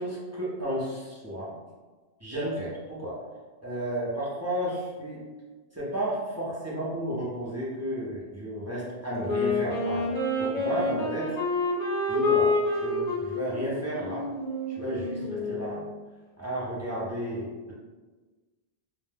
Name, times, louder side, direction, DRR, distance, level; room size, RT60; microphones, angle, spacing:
voice 1, 0.0-1.6 2.2-3.2 3.6-5.3 5.7-10.1 10.4-11.4 12.1-14.3 14.7-15.8 16.4-17.7, right 1 dB, 20° right, -8 dB, 0.5 m, -33 dB
Wind instrument woodwind instrument, 9.2-15.8, left 2 dB, 45° left, 0.6 m, -28 dB
2.2 x 2.1 x 3.3 m, 1.3 s
omnidirectional pair, 1.1 m